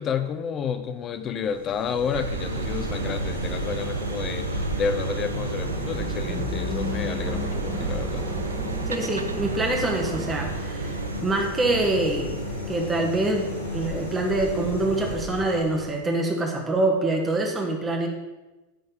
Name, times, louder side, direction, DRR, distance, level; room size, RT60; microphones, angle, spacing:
voice 1, 0.0-8.3, left 6 dB, 30° left, 9 dB, 0.8 m, -30 dB
sound 1, 1.4-16.1, equal, 80° left, 2.5 m, -33 dB
sound 2, 2.1-11.2, right 5 dB, 75° right, 0.4 m, -34 dB
sound 3, 2.4-10.5, left 1 dB, 5° left, 1.9 m, -36 dB
voice 2, 8.9-18.1, right 2 dB, 15° right, 1 dB, 1.8 m, -25 dB
11.0 x 4.3 x 6.7 m, 1.1 s
figure-of-eight pair, 90°, 0 cm